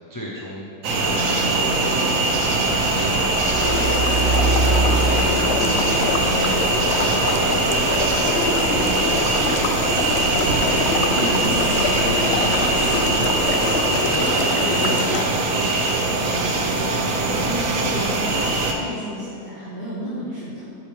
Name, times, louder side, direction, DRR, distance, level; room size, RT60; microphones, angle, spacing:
voice 1, 0.1-4.3 4.6-9.9 10.3-16.2, equal, 20° left, -5 dB, 0.6 m, -33 dB
sound 1, 0.8-18.7, right 2 dB, 60° right, 1.1 m, -21 dB
Truck, 2.5-13.7, right 3 dB, 75° right, 0.6 m, -29 dB
sound 2, 3.6-15.2, left 5 dB, 75° left, 0.6 m, -26 dB
voice 2, 11.1-11.6 17.0-18.4 18.8-20.8, equal, 40° right, -11 dB, 1.9 m, -32 dB
8.5 x 8.2 x 3.6 m, 2.5 s
omnidirectional pair, 1.7 m